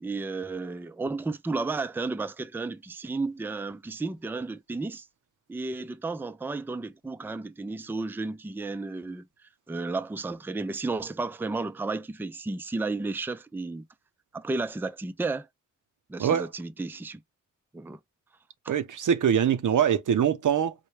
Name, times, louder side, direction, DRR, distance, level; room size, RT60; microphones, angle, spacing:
voice 1, 0.0-5.1 5.5-9.3 9.7-13.8 14.3-15.5 16.1-17.2 17.7-18.0 18.6-18.7, right 3 dB, 5° right, 0.3 m, -33 dB
voice 2, 18.7-20.7, right 8 dB, 85° right, 0.7 m, -23 dB
4.4 x 2.2 x 3.1 m
wide cardioid pair, 100°, 30 cm